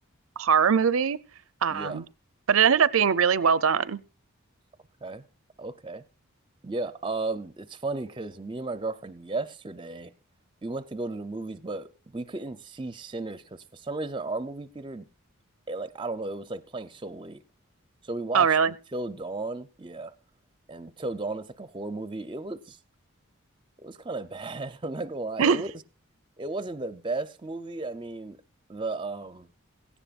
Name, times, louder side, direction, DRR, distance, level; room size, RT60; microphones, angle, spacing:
voice 1, 0.4-1.2 1.6-2.0 2.5-4.0 18.3-18.7 25.4-25.6, right 7 dB, 75° right, 0.6 m, -21 dB
voice 2, 1.7-2.0 5.0-5.2 5.6-6.0 6.6-10.1 10.6-15.0 15.7-17.4 18.0-20.1 20.7-22.8 23.8-25.7 26.4-28.4 28.7-29.5, right 2 dB, 20° right, 0.5 m, -34 dB
17.0 x 15.5 x 2.4 m
head